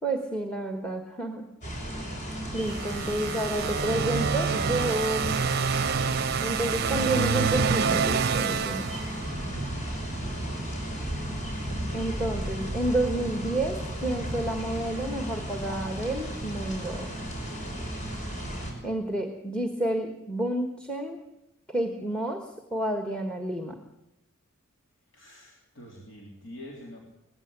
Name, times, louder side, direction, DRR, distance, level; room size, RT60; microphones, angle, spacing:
voice 1, 0.0-1.4 2.5-5.5 6.4-8.9 11.9-17.1 18.8-21.2 21.7-23.8, right 1 dB, 5° left, 5 dB, 1.4 m, -30 dB
sound 1, 1.6-18.7, right 1 dB, 35° left, 5.6 m, -34 dB
sound 2, 2.6-9.5, right 5 dB, 50° right, 0.7 m, -27 dB
voice 2, 3.4-4.0 7.0-7.4 25.1-27.1, equal, 60° left, -2 dB, 3.5 m, -44 dB
19.5 x 15.0 x 8.9 m, 0.87 s
head